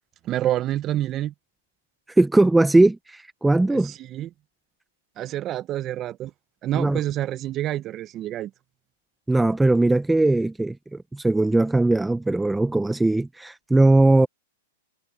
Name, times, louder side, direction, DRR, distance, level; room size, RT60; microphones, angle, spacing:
voice 1, 0.2-1.3 3.7-4.3 5.2-6.3 6.6-8.5, right 13 dB, 30° right, 1.2 m, -28 dB
voice 2, 2.2-3.9 6.7-7.0 9.3-14.3, right 2 dB, 5° right, 0.8 m, -19 dB
hypercardioid pair, 130°, 0 cm